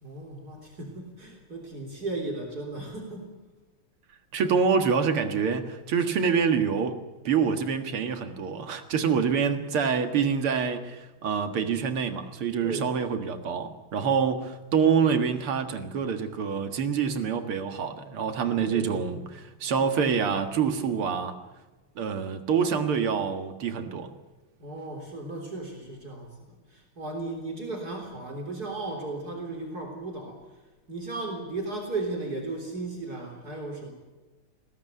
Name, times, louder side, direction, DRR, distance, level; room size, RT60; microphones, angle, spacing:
voice 1, 0.0-3.3 12.6-13.0 18.7-19.2 24.6-30.4 30.9-33.9, right 2 dB, 45° right, 1 dB, 4.1 m, -36 dB
voice 2, 4.3-19.2 19.6-21.3 22.0-24.1, right 6 dB, 80° right, 7 dB, 2.6 m, -26 dB
21.5 x 17.0 x 9.4 m, 1.2 s
omnidirectional pair, 2.4 m